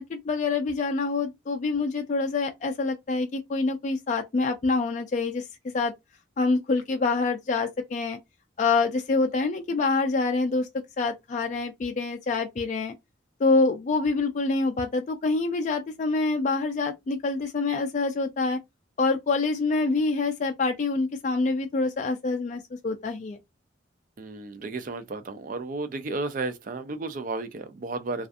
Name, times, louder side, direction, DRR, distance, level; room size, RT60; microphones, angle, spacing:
voice 1, 0.0-5.4 5.7-5.9 6.4-8.2 8.6-10.7 11.0-12.9 13.4-18.6 19.0-23.4, left 3 dB, 40° left, 0.3 m, -26 dB
voice 2, 24.2-28.3, right 3 dB, 45° right, 0.4 m, -33 dB
2.4 x 2.4 x 2.4 m
head